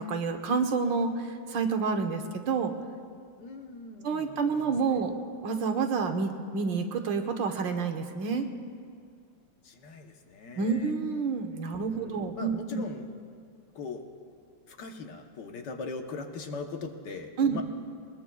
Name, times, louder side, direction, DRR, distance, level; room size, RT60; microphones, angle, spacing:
voice 1, 0.0-2.7 4.0-5.1 5.4-8.5 10.6-12.8 17.4-17.6, right 5 dB, 75° right, 5 dB, 1.6 m, -29 dB
voice 2, 3.4-5.0 9.6-10.9 11.9-13.1 13.7-14.0 14.7-17.6, left 4 dB, 70° left, 4 dB, 1.6 m, -40 dB
21.5 x 20.5 x 2.3 m, 2.2 s
omnidirectional pair, 2.0 m